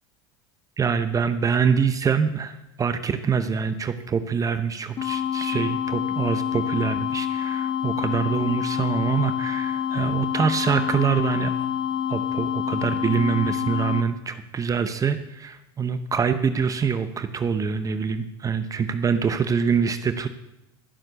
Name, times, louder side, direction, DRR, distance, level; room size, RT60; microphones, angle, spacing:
voice 1, 0.8-11.7 12.1-20.3, right 6 dB, 25° right, 10 dB, 0.8 m, -25 dB
sound 1, 5.0-14.0, left 9 dB, 40° left, 0.9 m, -27 dB
14.0 x 6.5 x 6.8 m, 0.94 s
hypercardioid pair, 85°, 13 cm